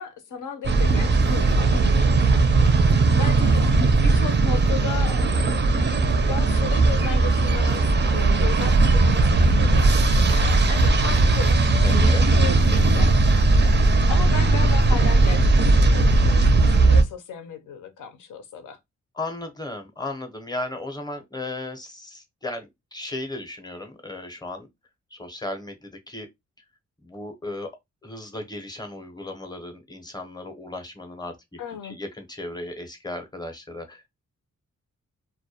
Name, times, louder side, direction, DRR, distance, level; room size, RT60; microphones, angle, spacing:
voice 1, 0.0-2.4 3.2-5.3 6.1-7.9 8.1-11.6 11.9-13.4 14.1-18.8 31.6-32.0, left 6 dB, 85° left, 0.6 m, -35 dB
sound 1, 0.6-17.0, right 3 dB, 35° right, 0.4 m, -18 dB
voice 2, 11.8-12.2 19.1-24.7 25.1-26.3 27.0-27.7 28.0-31.4 31.8-34.1, left 2 dB, 15° left, 0.6 m, -35 dB
2.2 x 2.1 x 2.7 m
wide cardioid pair, 100°, 30 cm